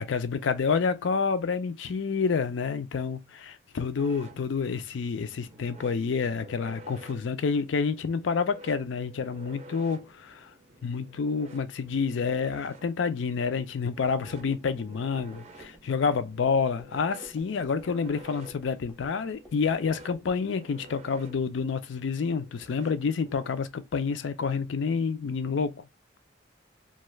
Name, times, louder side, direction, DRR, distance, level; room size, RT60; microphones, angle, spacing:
voice 1, 0.0-10.5 10.8-25.9, left 5 dB, 80° left, 0.4 m, -28 dB
sound 1, 4.0-23.5, right 1 dB, 35° right, 0.5 m, -51 dB
sound 2, 14.3-20.4, equal, 5° left, 0.7 m, -54 dB
2.5 x 2.4 x 2.9 m
head